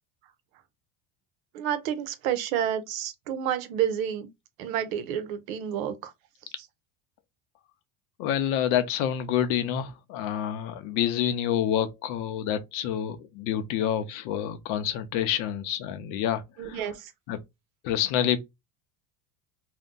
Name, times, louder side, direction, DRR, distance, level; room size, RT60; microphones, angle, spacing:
voice 1, 1.5-4.3 4.6-6.1 16.6-17.1, right 9 dB, 85° right, 0.8 m, -29 dB
voice 2, 8.2-16.8 17.3-17.4 17.8-18.4, left 10 dB, 55° left, 0.6 m, -28 dB
2.6 x 2.2 x 3.6 m
cardioid pair, 155°, 40 cm